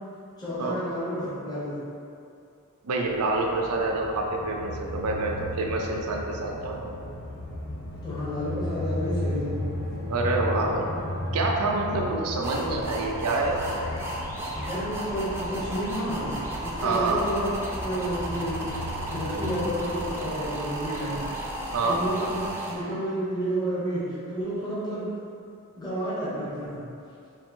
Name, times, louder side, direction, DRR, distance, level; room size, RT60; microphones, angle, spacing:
voice 1, 0.4-1.8 8.0-9.5 14.5-16.3 16.6-17.5 17.8-21.2 21.6-25.1 25.8-26.8, equal, 20° left, -12 dB, 1.1 m, -31 dB
voice 2, 2.8-6.9 10.1-10.9 11.3-13.9 16.8-17.2 21.7-22.0, right 2 dB, 75° right, 0 dB, 0.5 m, -27 dB
sound 1, 3.1-19.7, left 1 dB, 50° left, 0.6 m, -35 dB
sound 2, 12.4-22.7, right 1 dB, 10° right, 0.5 m, -34 dB
3.3 x 3.2 x 3.7 m, 2.6 s
head